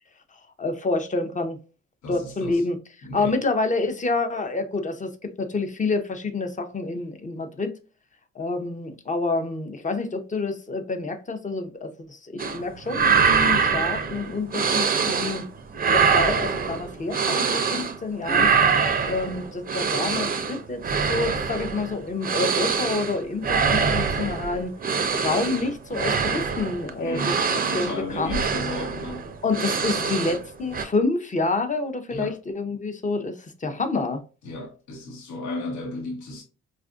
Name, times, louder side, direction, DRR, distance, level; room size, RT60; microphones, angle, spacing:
voice 1, 0.6-1.6 2.1-2.8 3.1-7.7 8.4-15.5 15.9-18.5 19.0-20.8 21.1-24.7 25.1-28.4 29.4-34.2, left 3 dB, 25° left, 0.6 m, -28 dB
voice 2, 2.0-2.6 3.0-3.3 27.0-29.2 30.0-30.2 32.1-32.4 34.4-36.4, left 2 dB, 75° left, 1.1 m, -34 dB
sound 1, 12.4-12.6 12.9-15.5 15.7-18.0 18.2-30.5 30.7-30.8, right 5 dB, 30° right, 0.5 m, -24 dB
4.2 x 2.5 x 2.4 m
cardioid pair, 90°, 30 cm